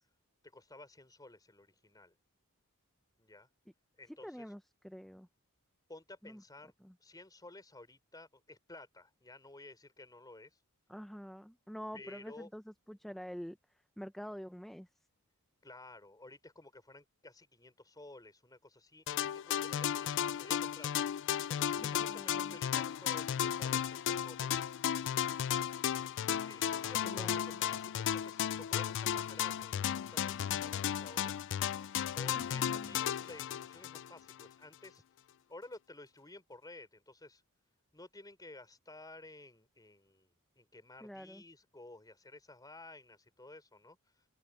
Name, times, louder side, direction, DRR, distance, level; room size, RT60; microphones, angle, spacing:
voice 1, 0.5-2.1 3.2-3.5 4.0-4.5 5.9-6.7 7.0-10.5 11.9-12.5 15.6-21.0 21.5-24.6 26.4-29.9 30.1-31.3 32.1-35.0 35.5-37.4 37.9-40.3 40.6-44.0, left 2 dB, 15° left, 4.5 m, -53 dB
voice 2, 4.2-5.3 6.2-6.4 6.8-6.9 10.9-12.6 12.9-13.6 14.0-14.9 21.8-22.6 27.0-27.4 32.4-33.0 41.0-41.4, equal, ahead, 0.8 m, -47 dB
sound 1, 19.1-34.5, left 10 dB, 55° left, 0.4 m, -34 dB
open air
head